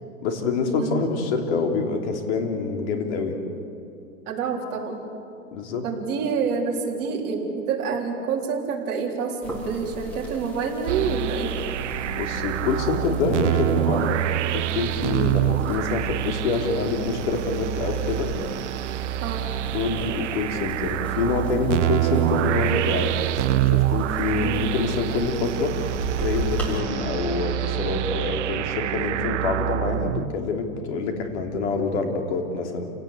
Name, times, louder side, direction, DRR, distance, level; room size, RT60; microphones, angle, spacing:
voice 1, 0.2-3.4 5.5-5.8 12.1-14.2 14.5-18.3 19.7-25.7 26.2-32.9, left 4 dB, 50° left, 3 dB, 3.3 m, -26 dB
voice 2, 4.3-5.0 5.8-11.5 19.2-19.5 24.4-24.7, right 5 dB, 30° right, -2 dB, 3.7 m, -27 dB
sound 1, 9.4-26.8, right 1 dB, 5° left, 3.5 m, -39 dB
sound 2, 10.9-30.3, right 13 dB, 55° right, 0.8 m, -26 dB
28.0 x 17.5 x 8.2 m, 2.8 s
hypercardioid pair, 155°, 43 cm